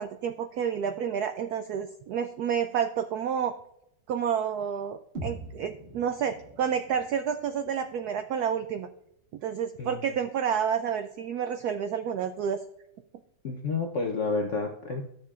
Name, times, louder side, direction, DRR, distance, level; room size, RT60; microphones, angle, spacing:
voice 1, 0.0-3.5 4.1-8.9 9.4-12.6, right 8 dB, 85° right, 8 dB, 0.8 m, -29 dB
sound 1, 5.1-9.1, right 2 dB, 35° right, 1.3 m, -44 dB
voice 2, 13.4-15.0, left 4 dB, 65° left, 2 dB, 0.7 m, -30 dB
14.5 x 6.5 x 2.4 m, 0.78 s
omnidirectional pair, 2.2 m